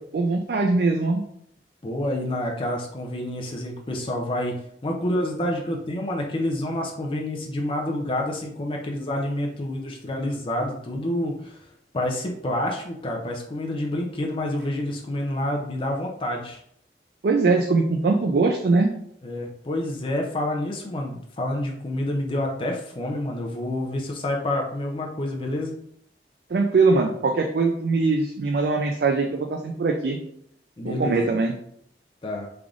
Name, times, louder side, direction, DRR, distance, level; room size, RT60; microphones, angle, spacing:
voice 1, 0.1-1.2 17.2-19.0 26.5-30.2 30.8-31.5, right 3 dB, 60° right, 3 dB, 0.3 m, -22 dB
voice 2, 1.8-4.6 4.8-11.6 11.9-16.6 19.2-25.8 30.8-31.2 32.2-32.5, left 1 dB, 30° left, 0 dB, 0.4 m, -28 dB
3.3 x 2.5 x 3.6 m, 0.70 s
head